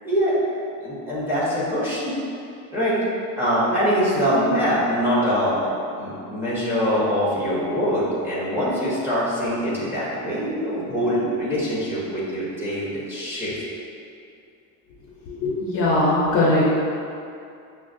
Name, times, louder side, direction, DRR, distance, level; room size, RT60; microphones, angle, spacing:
voice 1, 0.0-0.4 0.8-2.2 2.7-3.0 3.4-5.7 6.0-13.6, equal, 5° right, -9 dB, 0.7 m, -23 dB
voice 2, 15.3-16.8, left 1 dB, 40° left, -6 dB, 0.5 m, -20 dB
6.1 x 2.0 x 2.5 m, 2.5 s
cardioid pair, 165°, 37 cm